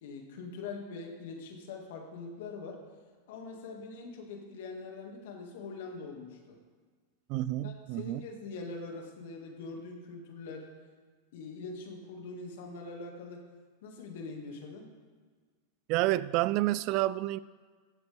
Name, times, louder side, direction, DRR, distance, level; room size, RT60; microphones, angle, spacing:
voice 1, 0.0-2.8 3.3-6.5 7.6-10.7 11.3-13.4 13.8-14.9, left 3 dB, 65° left, 2.1 m, -43 dB
voice 2, 7.3-8.2 15.9-17.4, right 17 dB, 50° right, 0.3 m, -29 dB
15.0 x 7.9 x 3.5 m
hypercardioid pair, 100°, 0 cm